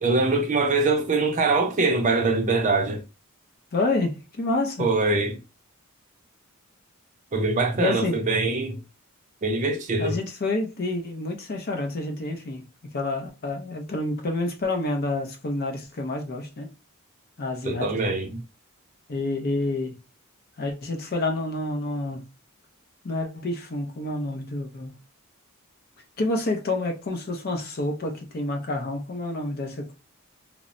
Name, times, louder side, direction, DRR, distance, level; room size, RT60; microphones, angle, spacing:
voice 1, 0.0-3.0 4.8-5.4 7.3-8.8 9.4-10.2 17.6-18.4, right 3 dB, 35° right, 0.5 m, -23 dB
voice 2, 3.7-4.9 7.8-8.2 10.0-12.6 12.9-16.7 17.4-17.9 19.1-20.0 20.6-22.3 23.0-25.0 26.2-29.9, left 2 dB, 45° left, 0.5 m, -28 dB
3.0 x 2.0 x 2.5 m
head